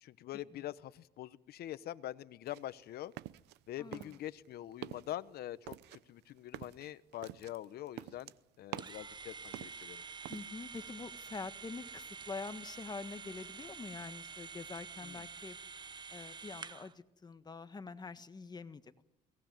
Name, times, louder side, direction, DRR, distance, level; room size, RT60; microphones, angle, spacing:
voice 1, 0.0-3.1 3.7-8.3 8.6-10.0 15.0-15.2, left 13 dB, 70° left, 1.1 m, -44 dB
sound 1, 2.4-3.6 3.9-4.5 4.7-5.2 5.7-9.1 9.5-10.5, right 15 dB, 85° right, 0.8 m, -47 dB
voice 2, 3.8-4.2 10.3-15.6 16.1-19.0, left 4 dB, 25° left, 1.5 m, -45 dB
sound 2, 8.8-16.9, right 5 dB, 25° right, 1.0 m, -48 dB
22.5 x 19.0 x 9.3 m
cardioid pair, 110°, 17 cm